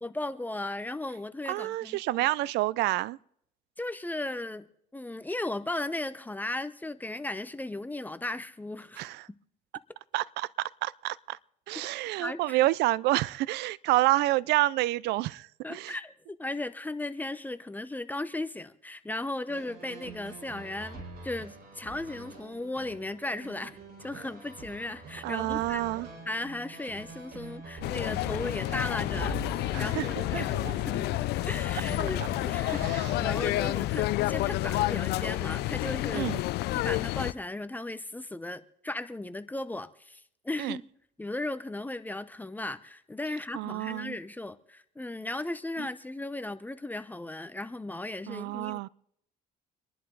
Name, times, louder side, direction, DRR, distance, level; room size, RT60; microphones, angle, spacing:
voice 1, 0.0-2.3 3.8-4.7 4.9-9.4 12.2-12.6 15.6-25.8 26.3-36.3 36.7-40.9 41.2-48.9, left 2 dB, 10° left, 0.7 m, -36 dB
voice 2, 1.5-3.2 9.0-9.2 10.1-11.4 11.7-15.9 25.2-26.1 29.7-30.1 30.3-30.4 32.7-33.1 36.1-36.4 40.6-40.8 43.5-44.2 45.8-45.9 48.3-48.9, right 17 dB, 80° right, 0.5 m, -28 dB
sound 1, 19.5-33.5, right 4 dB, 65° right, 4.8 m, -44 dB
sound 2, 27.8-37.3, left 17 dB, 75° left, 0.5 m, -29 dB
25.5 x 11.0 x 3.9 m
cardioid pair, 110°, 17 cm